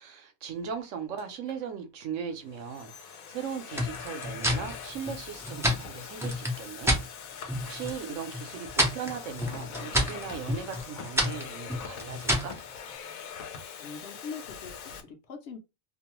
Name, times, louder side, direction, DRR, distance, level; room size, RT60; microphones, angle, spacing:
voice 1, 0.0-6.9 7.6-12.6, right 7 dB, 70° right, 1.0 m, -38 dB
Domestic sounds home sounds, 1.2-1.6 2.3-15.0, left 7 dB, 85° left, 1.0 m, -43 dB
sound 1, 3.7-7.1 7.5-8.0 8.3-12.6, equal, 5° right, 0.4 m, -29 dB
voice 2, 13.8-15.6, left 5 dB, 60° left, 0.8 m, -42 dB
2.7 x 2.1 x 2.9 m
omnidirectional pair, 1.4 m